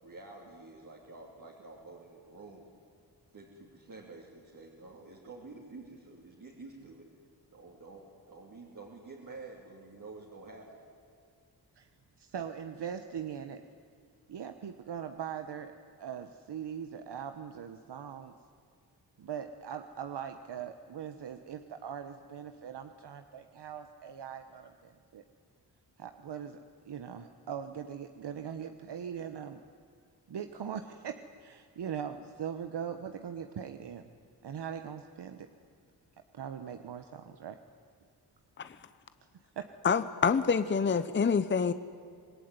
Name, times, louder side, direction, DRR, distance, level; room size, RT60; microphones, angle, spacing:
voice 1, 0.0-2.7 3.3-7.1 7.5-10.8, right 3 dB, 50° right, -3 dB, 3.5 m, -49 dB
voice 2, 12.2-13.6 14.3-18.3 19.2-25.2 26.0-26.6 26.8-29.6 30.3-34.0 34.4-35.5 36.3-37.6 39.6-39.7, right 8 dB, 80° right, 8 dB, 1.2 m, -41 dB
voice 3, 39.8-41.7, left 6 dB, 30° left, 12 dB, 0.7 m, -27 dB
26.5 x 20.5 x 9.6 m, 2.4 s
wide cardioid pair, 135°, 40 cm